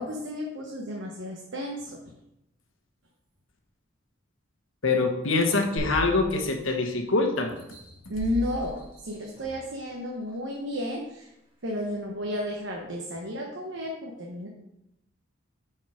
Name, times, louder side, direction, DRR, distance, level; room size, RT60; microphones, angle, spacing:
voice 1, 0.0-2.0 8.1-8.8 9.0-11.3 11.6-14.5, left 1 dB, 65° right, -1 dB, 1.0 m, -32 dB
voice 2, 4.8-7.5, left 3 dB, 75° left, 4 dB, 1.2 m, -24 dB
sound 1, 5.8-7.1 7.6-9.7 10.3-10.4, equal, 40° right, 3.0 m, -38 dB
7.4 x 4.7 x 5.0 m, 0.86 s
head